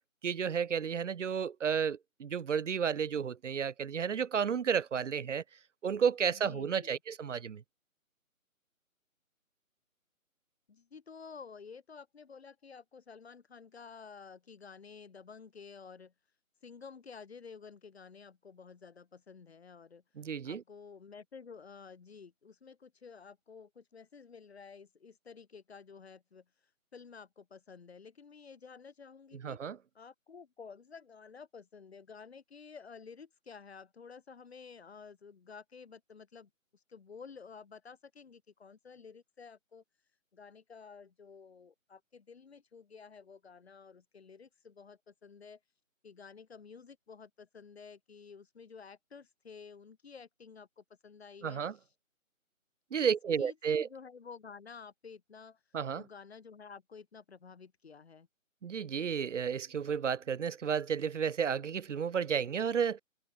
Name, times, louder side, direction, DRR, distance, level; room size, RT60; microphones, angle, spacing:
voice 1, 0.2-5.4 5.8-7.6 20.2-20.6 29.3-29.8 51.4-51.7 52.9-53.9 55.7-56.0 58.6-63.0, right 7 dB, 60° right, 0.6 m, -32 dB
voice 2, 6.3-7.0 10.7-16.1 16.6-20.0 20.4-26.4 26.9-29.6 29.9-39.8 40.3-45.6 46.0-51.8 53.0-53.1 53.4-55.6 55.9-58.3, left 5 dB, 50° left, 4.9 m, -52 dB
figure-of-eight pair, 160°, 41 cm